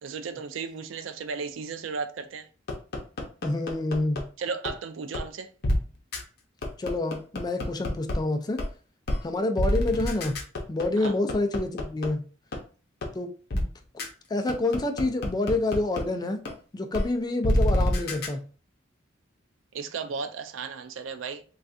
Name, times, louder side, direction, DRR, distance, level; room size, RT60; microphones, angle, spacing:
voice 1, 0.0-2.5 4.4-5.5 11.0-11.1 19.7-21.4, right 5 dB, 85° right, 0.4 m, -35 dB
sound 1, 2.7-4.2 4.7-4.8 5.1-5.2 5.6-5.8 6.1-6.2 6.6-8.1 8.6-8.7 9.1-9.2 9.6-12.1 12.5-12.6 13.0-13.1 13.5-13.6 14.0-14.1 14.5-16.0 16.5-16.6 16.9-17.0 17.4-18.3, left 1 dB, 55° left, 0.6 m, -26 dB
voice 2, 3.4-4.2 6.8-8.6 9.2-10.4 10.7-12.3 13.1-13.7 13.9-16.4 16.7-18.4, left 2 dB, 20° left, 0.3 m, -28 dB
3.2 x 2.3 x 2.5 m
head